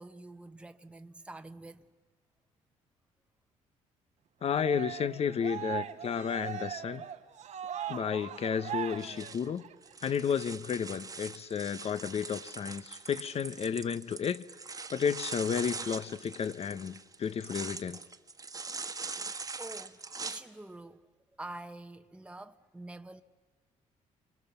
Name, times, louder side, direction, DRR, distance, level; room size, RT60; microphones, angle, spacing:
voice 1, 0.0-1.9 19.6-21.0 21.3-23.2, right 2 dB, 10° right, 1.1 m, -46 dB
voice 2, 4.4-7.1 7.9-9.6 10.0-14.4 14.9-18.0, left 7 dB, 50° left, 1.0 m, -32 dB
Cheering, 4.4-9.9, right 9 dB, 60° right, 1.2 m, -40 dB
sound 1, 8.9-20.4, right 4 dB, 25° right, 1.5 m, -42 dB
30.0 x 26.0 x 7.1 m
cardioid pair, 90°, 14 cm